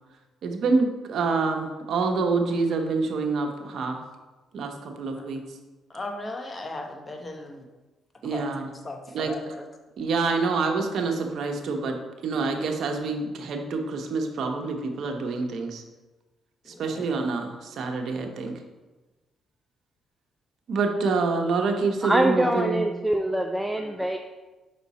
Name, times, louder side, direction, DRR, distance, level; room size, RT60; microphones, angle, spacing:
voice 1, 0.4-4.0 4.5-5.4 8.2-8.7 9.1-9.3 10.0-12.0 12.2-15.8 16.7-18.6 20.7-22.8, right 4 dB, 65° right, 3 dB, 0.9 m, -26 dB
voice 2, 5.9-7.6 8.3-8.5 8.8-9.6 16.6-17.0, left 2 dB, 30° left, 3 dB, 0.9 m, -37 dB
voice 3, 22.0-24.2, right 1 dB, 5° right, 4 dB, 0.4 m, -24 dB
5.6 x 4.3 x 4.1 m, 1.2 s
cardioid pair, 90°, 0 cm